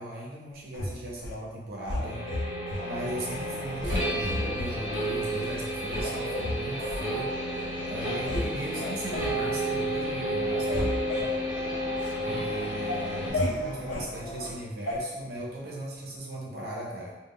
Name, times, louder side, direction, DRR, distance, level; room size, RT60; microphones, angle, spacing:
voice 1, 0.0-2.2 2.8-11.0 12.2-17.2, right 1 dB, 55° right, -4 dB, 0.5 m, -38 dB
sound 1, 0.7-1.4 1.9-2.8 3.2-3.5 3.8-4.7 5.3-5.4 5.9-7.0 7.6-7.7 8.0-8.5 8.8-9.4 9.8-10.1 10.4-12.2 12.6-14.1 14.9-15.0, left 1 dB, 90° left, 0.5 m, -33 dB
sound 2, 2.0-13.3, right 1 dB, 20° right, 0.9 m, -32 dB
sound 3, 2.7-14.5, equal, 25° left, 0.3 m, -42 dB
2.1 x 2.0 x 3.5 m, 1.1 s
head